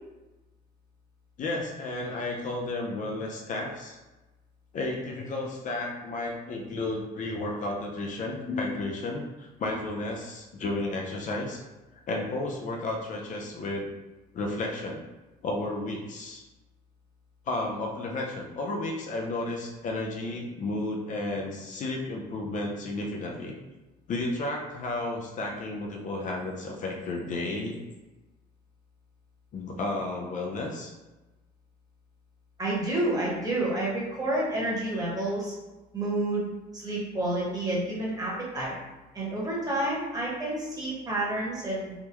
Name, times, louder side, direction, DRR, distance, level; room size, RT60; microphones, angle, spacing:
voice 1, 1.4-4.0 4.7-11.6 12.1-13.9 14.3-15.0 15.4-16.4 17.5-23.5 24.1-27.8 29.5-30.9, left 2 dB, 50° left, 0 dB, 0.5 m, -32 dB
voice 2, 32.6-35.5 35.9-36.4 36.7-38.7 39.1-41.9, right 1 dB, 20° right, -5 dB, 1.2 m, -29 dB
3.5 x 2.2 x 3.0 m, 1.1 s
cardioid pair, 110°, 17 cm